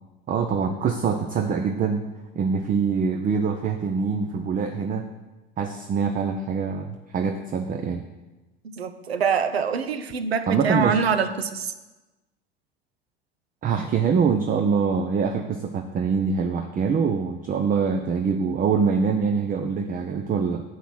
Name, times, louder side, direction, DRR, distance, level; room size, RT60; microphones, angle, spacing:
voice 1, 0.3-2.1 2.3-5.1 5.6-8.0 10.5-11.0 13.6-20.6, right 5 dB, 30° right, 7 dB, 0.6 m, -24 dB
voice 2, 8.6-11.7, right 6 dB, 85° right, 10 dB, 0.7 m, -25 dB
7.3 x 5.8 x 6.1 m, 1.1 s
hypercardioid pair, 75°, 30 cm